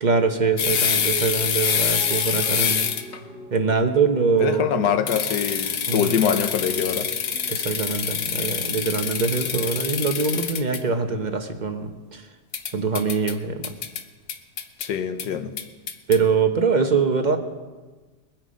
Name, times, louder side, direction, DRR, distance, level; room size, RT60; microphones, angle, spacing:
voice 1, 0.0-2.9 3.5-4.9 5.9-6.2 7.5-12.2 12.7-13.7 16.1-17.4, right 5 dB, 35° right, 0.8 m, -23 dB
sound 1, 0.6-3.2 5.1-10.8 12.5-13.3 13.6-14.0 14.3-14.9 15.2-15.3 15.6-16.2, left 7 dB, 60° left, 1.1 m, -26 dB
sound 2, 0.6-9.4, right 1 dB, 65° right, 1.9 m, -39 dB
voice 2, 4.4-7.1 14.8-15.5, left 8 dB, 75° left, 1.5 m, -24 dB
21.5 x 8.9 x 5.2 m
omnidirectional pair, 1.9 m